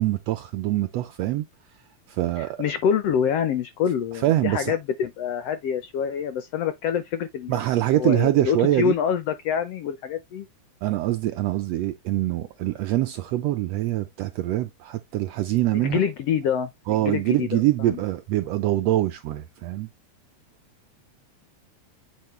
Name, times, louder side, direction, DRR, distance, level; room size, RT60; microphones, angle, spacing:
voice 1, 0.0-1.4 2.1-2.6 4.2-4.8 7.5-8.9 10.8-16.0 16.9-19.9, right 14 dB, 85° right, 1.5 m, -24 dB
voice 2, 2.4-7.6 7.9-10.5 15.7-18.0, left 8 dB, 75° left, 1.5 m, -26 dB
8.4 x 4.3 x 3.2 m
omnidirectional pair, 3.4 m